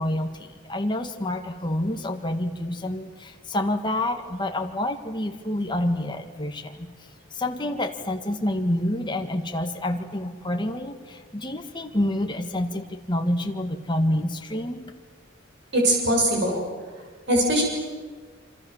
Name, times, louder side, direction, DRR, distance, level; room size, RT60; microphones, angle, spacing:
voice 1, 0.0-6.9 7.3-14.9, left 1 dB, 25° left, 4 dB, 1.9 m, -28 dB
voice 2, 15.7-16.6 17.3-17.6, right 1 dB, 60° right, 0 dB, 7.1 m, -21 dB
27.0 x 26.0 x 7.3 m, 1.4 s
head